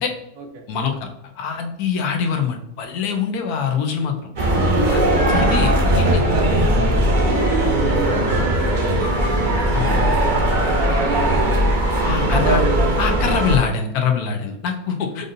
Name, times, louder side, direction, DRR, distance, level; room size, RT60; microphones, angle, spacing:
voice 1, 0.7-1.1 1.4-4.3 4.9-5.0 5.3-6.2 9.7-10.1 12.0-12.6 13.0-15.3, left 6 dB, 85° left, 5 dB, 1.1 m, -24 dB
sound 1, 4.4-13.6, right 1 dB, 45° right, 0.7 m, -18 dB
voice 2, 5.4-9.3 9.7-10.3 10.8-11.8 12.3-12.9, right 4 dB, 75° right, 4 dB, 1.1 m, -29 dB
5.1 x 2.6 x 2.6 m, 0.78 s
omnidirectional pair, 1.6 m